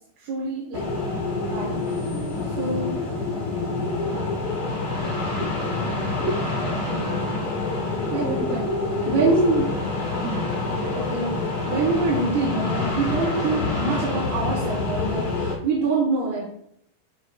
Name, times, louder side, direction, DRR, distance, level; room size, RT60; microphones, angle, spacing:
voice 1, 0.2-0.9 1.3-1.8 2.6-3.0 6.9-7.1 8.1-8.3 9.1-9.7 10.9-16.5, right 3 dB, 85° right, -2 dB, 3.1 m, -25 dB
sound 1, 0.7-15.5, left 3 dB, 70° left, 0.7 m, -27 dB
voice 2, 4.3-5.5 5.9-6.7 7.0-7.3 8.0-8.6 8.9-9.3 10.2-10.4 10.7-10.9, right 3 dB, 65° right, -2 dB, 3.7 m, -34 dB
10.5 x 5.0 x 2.2 m, 0.70 s
omnidirectional pair, 4.4 m